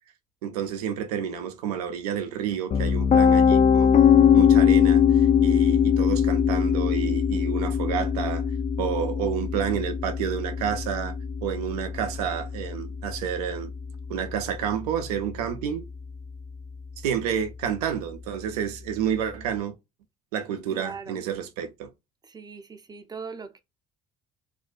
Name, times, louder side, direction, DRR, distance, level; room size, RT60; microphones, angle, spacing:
voice 1, 0.4-3.9 4.3-8.5 8.8-11.1 11.4-13.7 14.1-15.9 17.0-19.7 20.3-21.9, right 8 dB, 85° right, 0.4 m, -30 dB
Piano, 2.7-14.6, left 7 dB, 35° left, 0.4 m, -21 dB
voice 2, 20.7-21.2 22.3-23.6, right 5 dB, 20° right, 0.5 m, -40 dB
2.5 x 2.1 x 2.4 m
hypercardioid pair, 60°, 19 cm